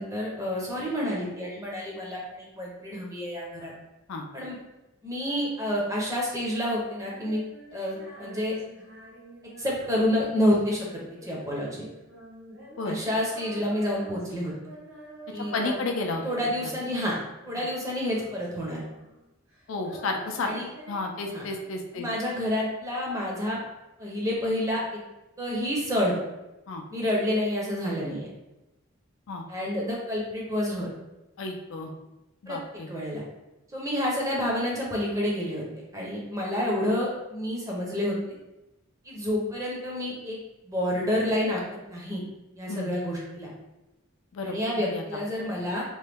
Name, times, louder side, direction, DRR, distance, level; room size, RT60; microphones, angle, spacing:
voice 1, 0.0-3.7 4.3-4.6 5.0-7.4 7.7-8.5 9.6-10.9 11.2-11.9 12.8-14.5 15.3-15.8 16.2-17.2 17.4-18.8 20.4-20.7 21.3-21.5 21.9-23.6 24.0-25.0 25.4-26.2 26.9-28.3 29.5-30.9 32.5-32.6 32.9-33.2 33.7-38.4 39.0-40.4 40.6-41.6 41.9-42.2 42.6-43.5 44.4-45.8, left 1 dB, 15° right, -3 dB, 0.6 m, -29 dB
Female singing, 6.9-17.3 17.5-19.2 19.5-22.2, right 1 dB, 75° right, 1.0 m, -48 dB
voice 2, 15.3-16.2 16.6-16.7 17.6-17.7 19.7-20.5 20.9-22.1 26.7-26.8 29.3-29.5 31.4-31.9 32.4-32.9 42.7-42.9 44.3-45.0, left 3 dB, 70° left, 3 dB, 0.4 m, -32 dB
3.0 x 2.2 x 3.3 m, 0.99 s
head